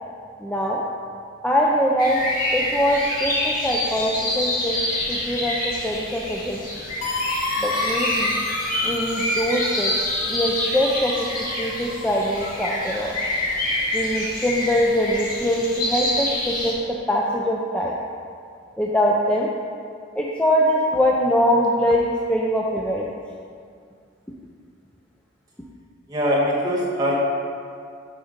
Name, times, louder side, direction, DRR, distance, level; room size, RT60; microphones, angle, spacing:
voice 1, 0.4-0.8 1.4-2.2 2.5-4.8 5.1-5.6 5.8-6.6 7.6-8.4 8.8-9.9 10.3-11.3 11.6-13.1 13.9-16.8 17.1-18.0 18.8-19.5 20.2-23.1, equal, 5° left, -3 dB, 0.4 m, -22 dB
sound 1, 2.0-16.7, left 1 dB, 45° left, 1.5 m, -26 dB
sound 2, 7.0-12.8, left 2 dB, 80° left, 1.0 m, -31 dB
voice 2, 26.1-27.1, equal, 20° right, -5 dB, 1.2 m, -22 dB
8.8 x 4.1 x 5.0 m, 2.3 s
head